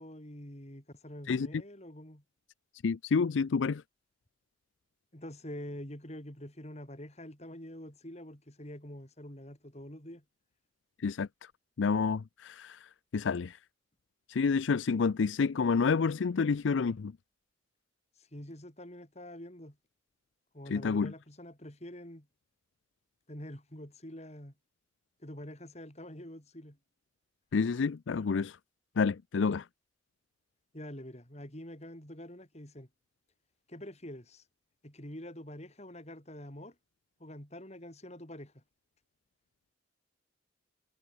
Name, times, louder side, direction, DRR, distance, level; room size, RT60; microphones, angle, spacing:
voice 1, 0.0-2.2 5.1-10.2 18.3-19.8 20.5-22.3 23.3-24.5 25.2-26.8 30.7-32.9 33.7-34.4 34.8-36.7 37.2-38.6, left 1 dB, 35° left, 5.5 m, -46 dB
voice 2, 2.8-3.8 11.0-11.3 11.8-13.6 14.3-17.1 20.7-21.1 27.5-28.6 29.0-29.6, left 5 dB, 75° left, 0.5 m, -29 dB
head